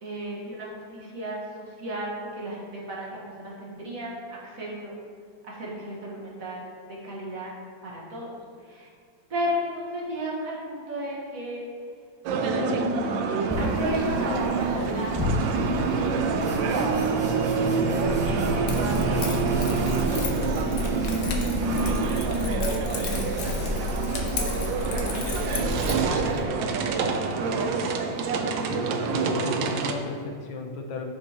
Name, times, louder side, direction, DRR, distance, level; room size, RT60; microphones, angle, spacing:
voice 1, 0.0-5.0 5.4-7.5 7.8-8.9 9.3-11.6 12.5-16.9 17.2-17.7 18.2-19.3 19.6-21.5 21.8-22.9 23.3-25.0 25.3-27.6, equal, 45° right, -4 dB, 1.8 m, -35 dB
sound 1, 12.3-29.9, right 4 dB, 75° right, 1.3 m, -26 dB
sound 2, 13.5-26.4, left 1 dB, 5° right, 1.4 m, -36 dB
Keys jangling, 18.0-26.0, left 2 dB, 55° left, 1.1 m, -31 dB
voice 2, 28.7-31.1, left 3 dB, 75° left, 3 dB, 1.5 m, -34 dB
11.0 x 6.1 x 2.9 m, 2.1 s
omnidirectional pair, 2.1 m